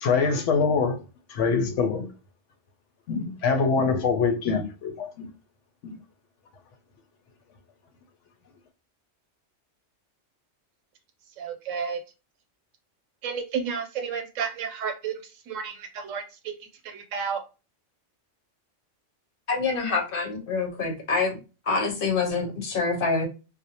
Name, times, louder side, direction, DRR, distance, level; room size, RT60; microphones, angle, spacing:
voice 1, 0.0-1.0 1.3-2.1 3.1-5.3 5.8-6.0, left 5 dB, 75° left, 0.9 m, -24 dB
voice 2, 11.4-12.0 13.2-15.1 15.5-16.2 16.8-17.4, right 6 dB, 90° right, 1.0 m, -31 dB
voice 3, 19.5-21.4 21.7-23.3, left 4 dB, 55° left, 0.7 m, -26 dB
2.5 x 2.0 x 2.8 m
omnidirectional pair, 1.3 m